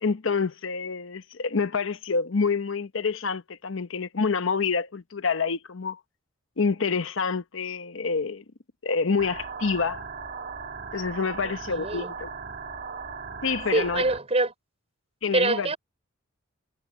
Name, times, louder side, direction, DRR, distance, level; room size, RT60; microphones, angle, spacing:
voice 1, 0.0-6.0 6.6-8.4 8.8-10.0 10.9-12.3 13.4-14.0 15.2-15.7, left 5 dB, 70° left, 0.8 m, -27 dB
sound 1, 9.2-14.2, right 5 dB, 50° right, 1.8 m, -37 dB
voice 2, 11.4-12.1 13.7-14.5 15.3-15.8, right 2 dB, 30° right, 5.7 m, -25 dB
head